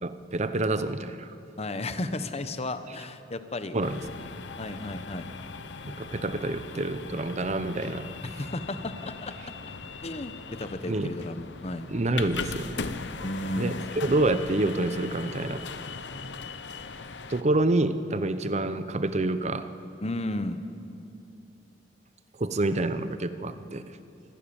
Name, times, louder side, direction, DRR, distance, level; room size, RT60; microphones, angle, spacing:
voice 1, 0.0-1.3 3.7-4.3 5.8-8.2 10.9-11.1 11.9-12.8 13.6-15.6 17.3-19.7 22.4-24.0, right 2 dB, 40° right, 11 dB, 0.8 m, -27 dB
voice 2, 1.6-3.8 4.6-5.3 8.4-9.3 10.0-11.9 13.2-13.9 20.0-20.7, left 1 dB, 35° left, 10 dB, 1.0 m, -33 dB
sound 1, 3.8-17.4, left 4 dB, 75° left, 0.9 m, -39 dB
26.0 x 15.0 x 7.2 m, 2.7 s
head